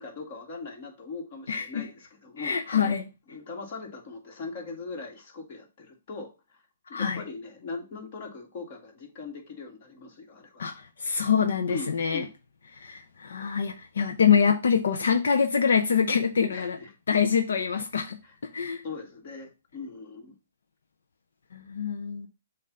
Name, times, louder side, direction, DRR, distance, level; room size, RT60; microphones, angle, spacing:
voice 1, 0.0-3.0 3.3-6.6 6.9-10.7 11.7-12.3 16.5-16.9 18.2-18.4 18.8-20.4, left 4 dB, 45° left, 2.1 m, -40 dB
voice 2, 1.5-1.9 2.4-3.0 6.9-7.2 10.6-12.2 12.7-16.8 17.1-18.2 18.5-18.8 21.5-22.3, left 6 dB, 80° left, 0.7 m, -25 dB
7.5 x 2.7 x 5.5 m
hypercardioid pair, 155°, 0 cm